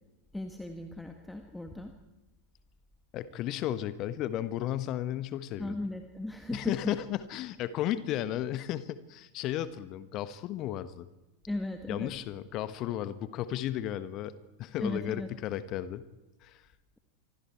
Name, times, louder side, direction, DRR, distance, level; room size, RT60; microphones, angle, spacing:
voice 1, 0.3-1.9 5.6-6.9 11.5-12.1 14.8-15.3, left 1 dB, 5° left, 6 dB, 1.7 m, -37 dB
voice 2, 3.1-5.8 6.5-11.1 11.9-14.3 14.6-16.0 16.4-16.6, left 12 dB, 35° left, 14 dB, 1.2 m, -34 dB
26.0 x 24.5 x 4.6 m, 1.0 s
figure-of-eight pair, 90°, 0 cm